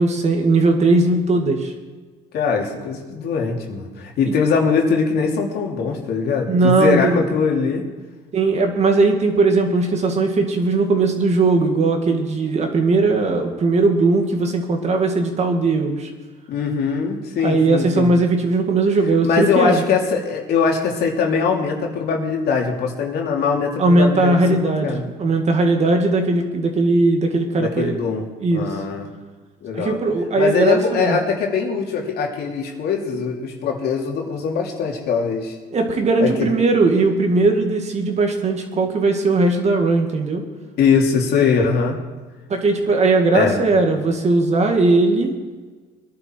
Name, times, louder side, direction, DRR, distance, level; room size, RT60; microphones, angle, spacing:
voice 1, 0.0-1.7 4.3-4.4 6.5-7.2 8.3-16.1 17.4-19.8 23.8-28.0 28.4-28.7 29.7-31.2 35.7-40.5 42.5-45.3, right 3 dB, 40° right, 4 dB, 2.2 m, -18 dB
voice 2, 2.3-7.8 16.5-18.1 19.2-25.1 27.6-28.2 28.5-29.1 29.6-30.0 30.4-35.6 36.2-36.5 40.8-42.0 43.3-43.6, left 5 dB, 70° left, 0 dB, 2.9 m, -21 dB
21.5 x 11.0 x 4.6 m, 1.4 s
cardioid pair, 110°, 17 cm